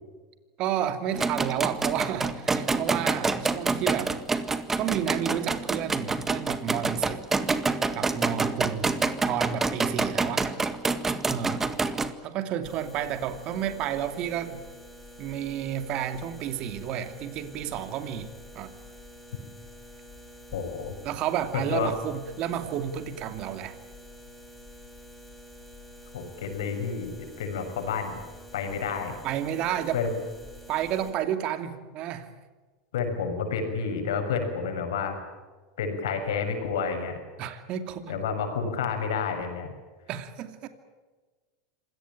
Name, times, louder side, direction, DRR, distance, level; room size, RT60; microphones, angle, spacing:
voice 1, 0.6-4.1 4.8-7.2 7.9-8.9 9.3-10.5 11.3-11.7 12.2-14.6 15.2-18.3 18.5-18.7 21.0-23.8 29.2-30.0 30.7-32.3 37.4-38.2 40.1-40.7, right 10 dB, 50° right, 8 dB, 2.6 m, -31 dB
sound 1, 1.1-12.1, right 3 dB, 15° right, 1.8 m, -27 dB
sound 2, 12.6-31.1, equal, ahead, 6.2 m, -48 dB
voice 2, 20.5-20.9 21.5-21.9 26.1-28.2 28.5-29.1 29.9-30.1 32.9-35.2 35.8-37.2 38.1-39.7, left 6 dB, 85° left, 5 dB, 6.4 m, -30 dB
26.5 x 17.5 x 8.9 m, 1.3 s
hypercardioid pair, 110°, 2 cm